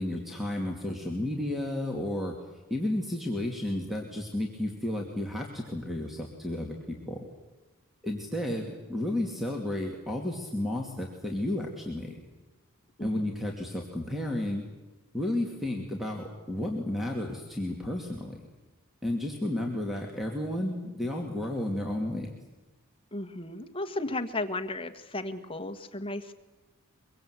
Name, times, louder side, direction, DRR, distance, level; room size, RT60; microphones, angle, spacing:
voice 1, 0.0-2.3 2.7-7.2 8.0-12.2 13.0-14.6 15.1-18.4 19.0-22.3, left 1 dB, ahead, 0 dB, 2.6 m, -32 dB
voice 2, 13.0-13.3 23.1-26.3, left 2 dB, 25° left, 8 dB, 1.5 m, -34 dB
24.0 x 23.5 x 8.2 m, 1.1 s
head